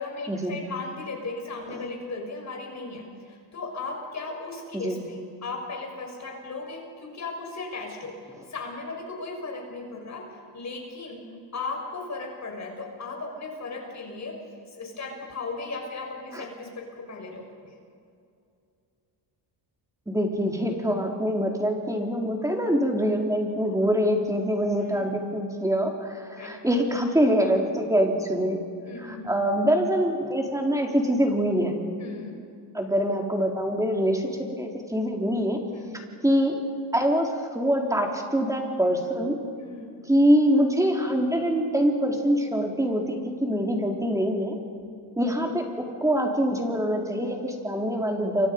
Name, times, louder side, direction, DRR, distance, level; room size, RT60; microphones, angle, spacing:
voice 1, 0.0-8.1 8.5-11.2 11.5-14.4 14.7-17.7 24.8-25.1 26.3-26.6 28.8-29.5 32.0-32.4 35.7-36.0 39.6-39.9 45.3-45.6, left 3 dB, 40° left, 1 dB, 5.9 m, -36 dB
voice 2, 20.1-28.6 29.0-31.7 32.7-35.6 36.2-36.6 36.9-39.4 40.1-44.5 45.2-48.5, equal, 5° right, 1 dB, 3.9 m, -24 dB
29.5 x 24.5 x 5.5 m, 2.5 s
cardioid pair, 105°, 43 cm